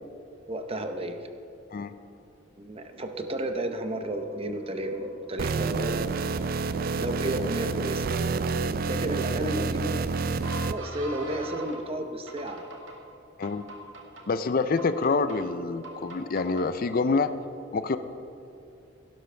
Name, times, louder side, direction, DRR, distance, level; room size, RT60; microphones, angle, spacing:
voice 1, 0.5-1.2 2.6-6.2 7.0-8.0 8.9-10.1 10.7-12.6, right 1 dB, 30° right, 6 dB, 0.8 m, -32 dB
sound 1, 2.8-11.8 12.3-13.0 13.4-14.2 14.8-15.4 15.8-16.7, right 1 dB, 80° right, 1.8 m, -41 dB
sound 2, 5.4-10.7, right 4 dB, 50° right, 0.4 m, -28 dB
voice 2, 14.3-17.3 17.7-18.0, left 4 dB, 50° left, 11 dB, 0.5 m, -26 dB
17.0 x 11.5 x 3.4 m, 2.7 s
head